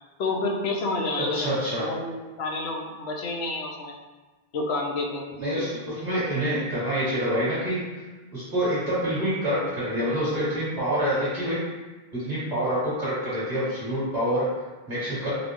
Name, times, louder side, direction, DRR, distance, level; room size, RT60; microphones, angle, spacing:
voice 1, 0.2-1.5 1.8-3.9 4.5-5.3, left 2 dB, 85° left, 0 dB, 0.8 m, -29 dB
voice 2, 1.3-1.9 5.3-7.8 8.3-11.6 12.1-14.4 14.9-15.3, equal, 40° right, -11 dB, 1.8 m, -26 dB
4.1 x 2.1 x 2.9 m, 1.2 s
omnidirectional pair, 1.0 m